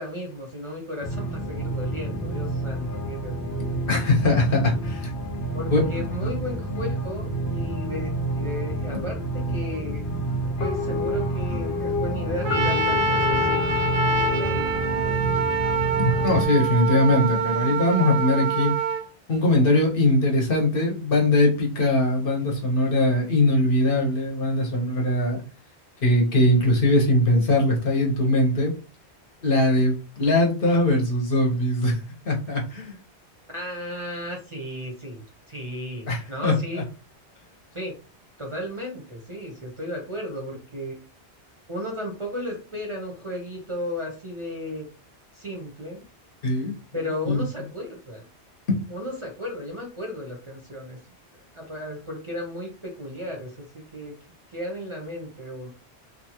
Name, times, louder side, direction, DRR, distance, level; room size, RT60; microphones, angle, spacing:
voice 1, 0.0-3.8 5.5-10.0 10.6-13.9 14.3-15.1 33.5-36.8 37.7-37.9 38.4-41.0 41.7-44.9 45.3-46.0 46.9-48.3 48.9-51.0 51.5-54.1 54.5-55.7, left 1 dB, 35° right, -1 dB, 0.6 m, -34 dB
sound 1, 1.0-16.4, right 1 dB, 85° left, 0.9 m, -28 dB
voice 2, 3.9-5.1 5.7-5.8 6.2-6.3 16.0-18.7 19.3-25.4 26.0-28.7 29.4-32.0 32.2-33.0 36.1-36.5 46.4-46.7 47.3-47.4 48.7-48.8, left 1 dB, 60° left, 0 dB, 0.9 m, -21 dB
Trumpet, 12.4-19.0, right 4 dB, 85° right, 0.9 m, -25 dB
2.7 x 2.3 x 2.8 m, 0.34 s
omnidirectional pair, 1.1 m